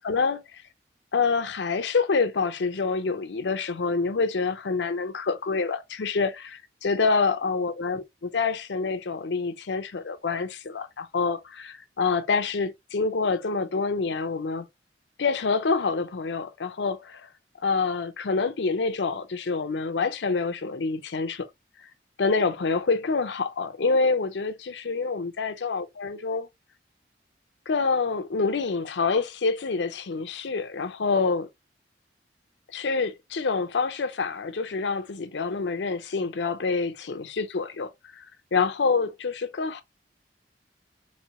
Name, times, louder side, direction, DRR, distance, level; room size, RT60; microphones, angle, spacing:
voice 1, 0.0-0.6 1.1-8.0 8.3-14.7 15.2-17.3 17.6-21.5 21.8-21.9 22.2-26.5 27.7-31.5 32.7-38.2 38.5-39.8, left 4 dB, 85° left, 0.6 m, -27 dB
4.3 x 2.7 x 2.8 m
head